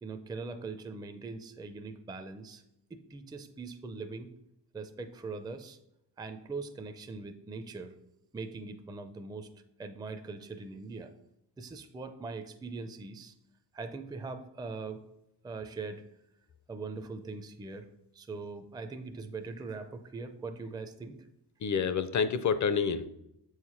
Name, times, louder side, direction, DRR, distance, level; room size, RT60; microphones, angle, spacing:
voice 1, 0.0-2.6 2.9-4.3 4.7-5.8 6.2-7.9 8.3-9.5 9.8-11.1 11.6-13.3 13.7-15.0 15.4-16.0 16.7-17.9 18.1-21.3, right 4 dB, 10° right, 7 dB, 0.4 m, -41 dB
voice 2, 21.6-23.1, left 6 dB, 45° left, 13 dB, 0.5 m, -28 dB
7.5 x 4.9 x 5.6 m, 0.81 s
wide cardioid pair, 175°, 41 cm